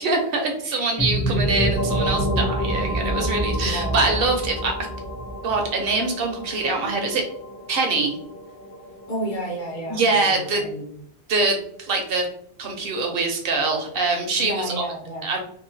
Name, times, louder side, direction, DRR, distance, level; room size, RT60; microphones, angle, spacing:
voice 1, 0.0-4.7 5.4-7.2 7.7-8.2 9.9-10.6 11.3-12.3 12.6-14.7 15.2-15.4, right 3 dB, 65° right, 3 dB, 0.8 m, -24 dB
voice 2, 0.6-1.1 3.5-4.2 9.1-10.9 14.4-15.3, equal, 50° left, -1 dB, 0.9 m, -32 dB
sound 1, 1.0-10.5, equal, 10° left, 0.5 m, -28 dB
sound 2, 1.7-8.2, right 1 dB, 45° right, 0.4 m, -40 dB
2.9 x 2.1 x 2.6 m, 0.66 s
omnidirectional pair, 1.1 m